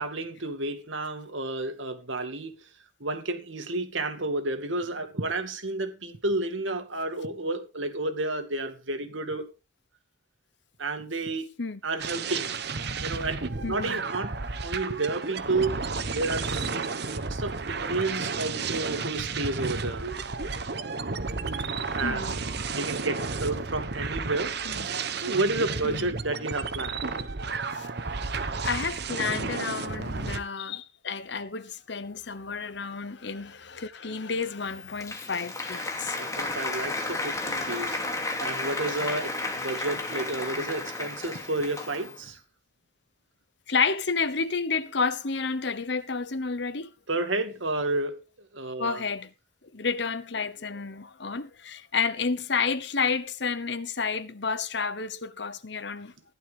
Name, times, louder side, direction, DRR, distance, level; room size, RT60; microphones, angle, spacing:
voice 1, 0.0-2.6 3.0-9.5 10.8-11.5 11.8-12.6 13.0-15.8 16.1-16.7 17.0-20.1 21.9-24.6 24.9-27.1 36.2-38.0 38.4-42.4 47.1-48.2 48.5-49.1, right 2 dB, 75° right, 2.2 m, -31 dB
sound 1, 12.0-30.4, right 4 dB, 55° right, 1.1 m, -32 dB
voice 2, 13.6-14.0 22.0-22.4 24.7-24.9 25.8-26.1 27.7-27.9 28.6-36.2 43.7-46.9 48.8-49.3 49.7-56.1, left 5 dB, 60° left, 1.1 m, -30 dB
Applause, 34.6-42.2, left 2 dB, 15° left, 2.7 m, -33 dB
15.0 x 11.5 x 3.6 m
head